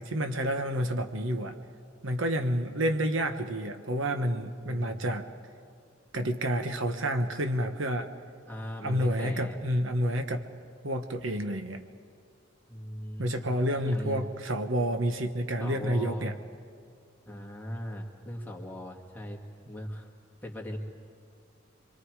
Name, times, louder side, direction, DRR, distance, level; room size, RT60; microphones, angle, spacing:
voice 1, 0.0-1.6 2.0-5.3 6.1-8.1 8.8-10.4 10.8-11.8 13.2-16.3, equal, 75° right, 7 dB, 1.2 m, -29 dB
voice 2, 4.6-5.0 8.5-9.6 12.7-14.4 15.6-16.3 17.3-19.4 19.7-20.1 20.4-20.8, equal, 10° left, 0 dB, 2.1 m, -39 dB
28.0 x 24.0 x 4.8 m, 2.4 s
head